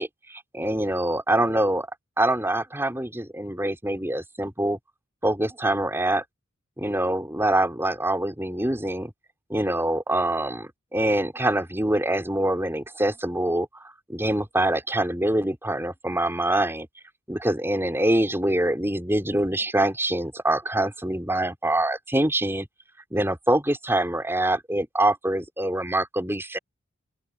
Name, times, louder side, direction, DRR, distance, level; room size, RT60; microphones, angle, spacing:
voice 1, 0.0-1.9 2.2-4.8 5.2-6.2 6.8-9.1 9.5-13.8 14.1-16.9 17.3-22.7 23.1-26.6, right 1 dB, 10° right, 5.2 m, -25 dB
open air
head